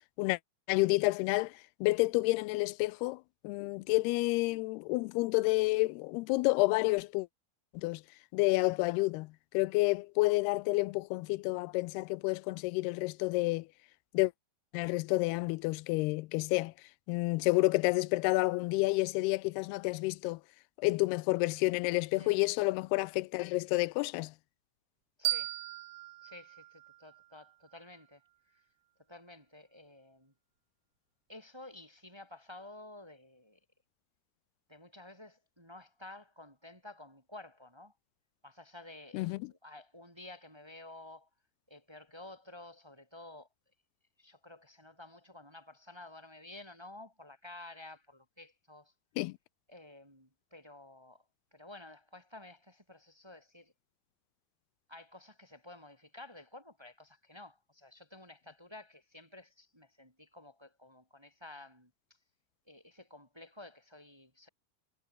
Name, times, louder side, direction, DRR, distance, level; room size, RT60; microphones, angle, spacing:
voice 1, 0.7-1.5 1.8-7.3 7.8-8.0 8.3-13.7 14.1-14.3 14.7-16.7 17.1-20.4 20.8-24.3 39.1-39.4 49.2-49.4, left 22 dB, 90° left, 2.6 m, -29 dB
voice 2, 25.2-25.6 26.2-28.2 28.5-28.6 29.1-30.3 31.3-33.6 34.7-37.9 38.4-41.3 41.7-43.5 44.2-48.9 49.7-51.2 51.5-53.7 54.9-61.9 62.7-64.5, left 2 dB, 5° right, 2.6 m, -52 dB
sound 1, 25.2-28.0, right 19 dB, 80° right, 2.3 m, -38 dB
omnidirectional pair, 4.5 m